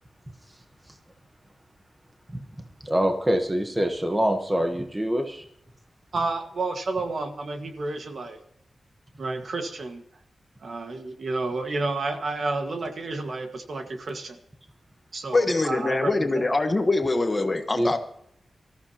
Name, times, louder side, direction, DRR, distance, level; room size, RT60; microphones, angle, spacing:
voice 1, 2.8-5.4 17.8-18.0, equal, 15° right, 1.1 m, -25 dB
voice 2, 6.1-8.4 9.2-10.0 10.6-14.4 15.1-16.4, right 3 dB, 50° right, 1.7 m, -30 dB
voice 3, 15.3-18.0, left 2 dB, 25° left, 1.2 m, -23 dB
25.5 x 14.5 x 2.9 m
wide cardioid pair, 175°, 0 cm